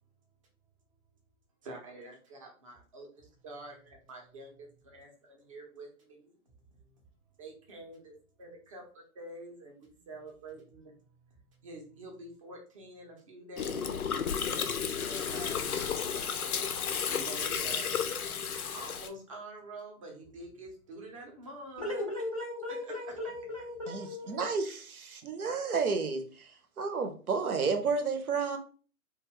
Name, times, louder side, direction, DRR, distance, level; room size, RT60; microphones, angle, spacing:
voice 1, 1.6-6.4 6.9-7.0 7.4-10.9 11.6-14.1 15.0-16.4 17.1-18.2 18.7-22.1 22.7-23.2 25.5-25.6, right 2 dB, 25° right, 0 dB, 0.5 m, -47 dB
Gurgling, 13.6-19.1, left 7 dB, 85° left, 0.5 m, -33 dB
voice 2, 21.8-24.5, left 2 dB, 25° left, -4 dB, 0.4 m, -37 dB
voice 3, 23.9-26.5 26.8-28.6, right 4 dB, 80° right, 6 dB, 0.7 m, -31 dB
2.2 x 2.2 x 3.4 m, 0.39 s
figure-of-eight pair, 135°, 43 cm